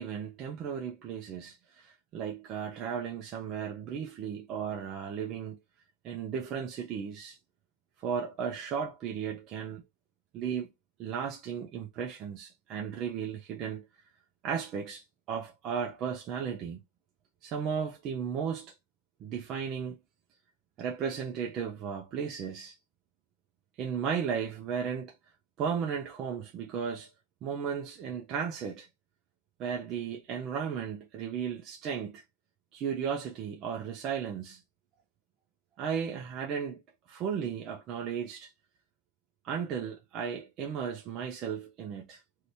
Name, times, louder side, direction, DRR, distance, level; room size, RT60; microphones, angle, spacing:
voice 1, 0.0-5.6 6.0-7.4 8.0-9.8 10.3-10.7 11.0-13.9 14.4-16.8 17.4-18.7 19.2-20.0 20.8-22.8 23.8-25.2 25.6-27.1 27.4-28.9 29.6-32.2 32.7-34.6 35.8-36.8 37.1-38.5 39.4-42.2, right 7 dB, 35° right, 0.6 m, -35 dB
2.8 x 2.7 x 3.2 m
supercardioid pair, 150°, 0 cm